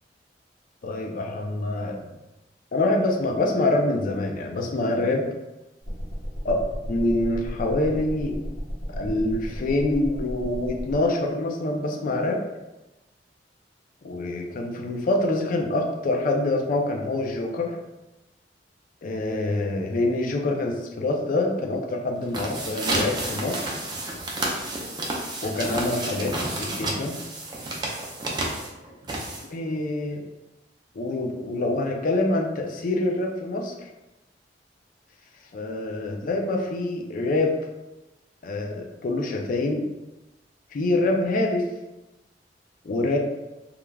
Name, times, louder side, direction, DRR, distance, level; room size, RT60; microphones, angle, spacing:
voice 1, 0.8-2.1 2.7-5.3 6.4-6.6 6.9-8.3 8.9-12.4 14.0-17.8 19.0-23.7 25.4-27.1 29.5-30.2 31.0-33.7 35.5-37.6 38.4-39.8 40.7-41.7 42.8-43.2, left 2 dB, 50° left, 2 dB, 0.4 m, -25 dB
sound 1, 5.8-11.0, equal, 80° left, 0.9 m, -34 dB
sound 2, 22.2-29.7, right 2 dB, 25° right, 0.4 m, -30 dB
3.2 x 2.4 x 2.2 m, 1.0 s
head